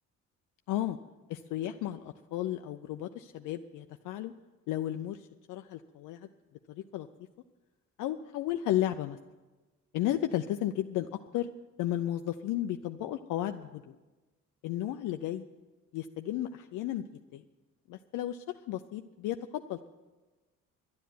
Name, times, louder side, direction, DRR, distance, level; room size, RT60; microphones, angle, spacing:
voice 1, 1.3-4.3 4.7-6.3 6.7-7.1 8.0-9.2 9.9-11.1 11.3-11.5 11.8-14.0 14.6-15.4 15.9-17.0 17.3-17.4 17.9-19.9, left 13 dB, 85° left, 6 dB, 0.5 m, -33 dB
10.5 x 10.0 x 9.2 m, 1.2 s
cardioid pair, 90°, 30 cm